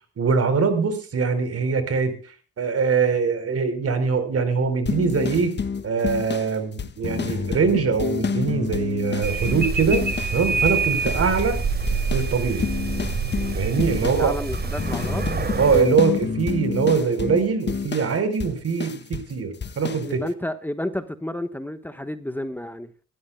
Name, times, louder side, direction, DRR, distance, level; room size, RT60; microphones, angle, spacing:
voice 1, 0.2-2.2 2.6-5.5 5.8-11.6 12.1-12.7 13.5-14.3 15.6-20.2, right 5 dB, 50° right, 4.0 m, -22 dB
sound 1, 4.9-10.4 10.7-11.6 11.9-19.3 19.6-20.1, left 6 dB, 35° left, 1.4 m, -29 dB
sound 2, 9.2-15.8, right 4 dB, 35° right, 3.3 m, -26 dB
voice 2, 14.0-15.3 20.0-22.9, left 1 dB, 5° left, 1.2 m, -31 dB
25.5 x 13.5 x 2.2 m
cardioid pair, 90°, 30 cm